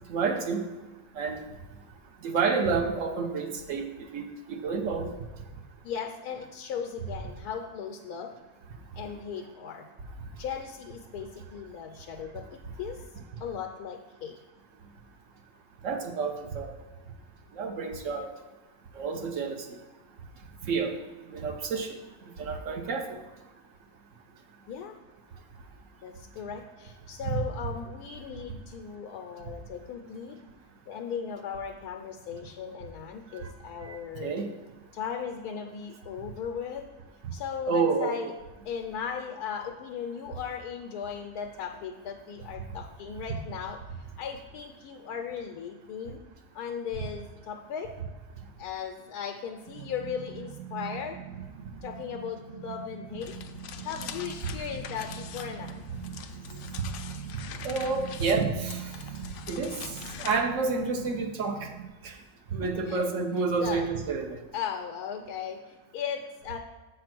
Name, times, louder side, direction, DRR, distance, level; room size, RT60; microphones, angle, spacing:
voice 1, 0.1-0.6 1.2-1.4 2.2-3.9 4.1-5.1 15.8-16.7 17.5-18.3 19.0-19.6 20.6-20.9 21.3-22.0 22.4-23.2 27.2-27.3 34.2-34.5 37.7-38.3 57.6-58.9 59.5-59.7 60.2-61.7 62.0-62.1 62.5-64.4, right 4 dB, 60° right, 5 dB, 1.1 m, -29 dB
voice 2, 5.8-8.3 8.9-9.9 10.4-13.0 13.4-14.4 24.7-25.0 26.0-30.4 30.9-34.3 34.9-36.9 37.3-38.3 38.7-46.2 46.5-47.9 48.6-51.2 51.8-53.3 53.8-55.8 59.7-60.3 62.6-63.1 63.6-63.9 64.5-66.6, left 7 dB, 85° left, 3 dB, 1.2 m, -37 dB
sound 1, 49.7-61.9, right 10 dB, 85° right, 1.2 m, -43 dB
sound 2, 53.2-60.4, left 7 dB, 65° left, 0.7 m, -43 dB
7.2 x 4.4 x 5.9 m, 1.2 s
omnidirectional pair, 1.6 m